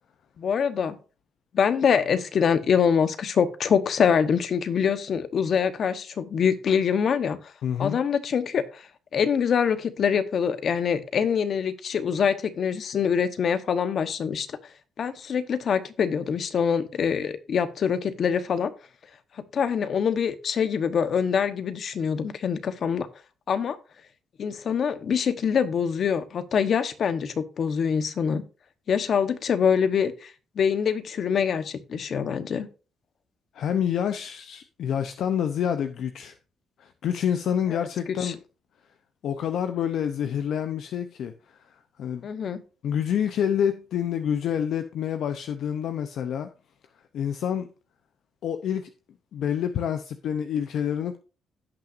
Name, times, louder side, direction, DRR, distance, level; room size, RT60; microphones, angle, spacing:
voice 1, 0.4-1.0 1.5-7.4 7.8-8.8 9.1-14.5 15.0-18.7 19.5-23.1 23.5-23.8 24.4-28.4 28.9-32.7 37.7-37.8 38.2-38.3 42.2-42.6, left 7 dB, 55° left, 1.0 m, -24 dB
voice 2, 7.6-8.0 33.5-36.4 36.8-38.4 39.2-42.3 42.8-46.5 47.1-47.7 48.4-48.9 49.3-51.2, left 9 dB, 70° left, 0.6 m, -27 dB
16.5 x 5.9 x 2.6 m
cardioid pair, 90°, 0 cm